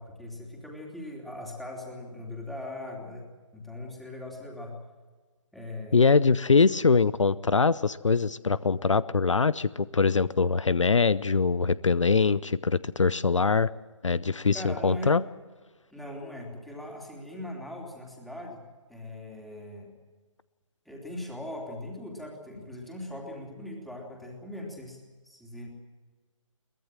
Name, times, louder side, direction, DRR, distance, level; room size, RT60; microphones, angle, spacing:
voice 1, 0.0-3.3 3.5-4.8 5.5-6.0 14.5-15.2 15.9-18.6 18.9-19.9 20.8-25.7, left 1 dB, ahead, -1 dB, 3.1 m, -40 dB
voice 2, 5.9-13.7 14.0-15.2, left 4 dB, 70° left, 19 dB, 0.7 m, -23 dB
23.0 x 19.0 x 7.5 m, 1.4 s
figure-of-eight pair, 140°, 17 cm